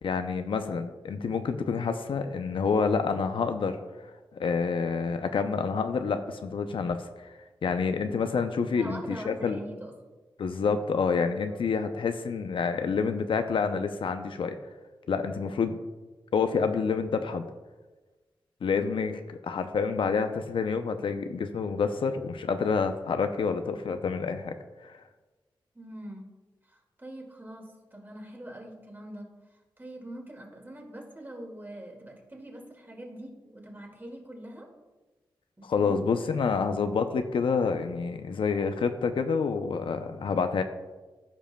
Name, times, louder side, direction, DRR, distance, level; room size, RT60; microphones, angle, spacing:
voice 1, 0.0-3.8 4.3-7.3 7.6-9.6 10.4-14.6 15.1-15.8 16.3-17.5 18.6-24.6 24.8-25.0 35.6-40.6, left 5 dB, 75° left, 8 dB, 0.5 m, -28 dB
voice 2, 8.7-9.9 11.5-11.8 25.7-26.3 26.7-34.7 35.6-35.9 36.3-36.5, right 1 dB, 25° right, 0 dB, 2.0 m, -43 dB
15.0 x 5.1 x 2.2 m, 1.2 s
cardioid pair, 55°, 9 cm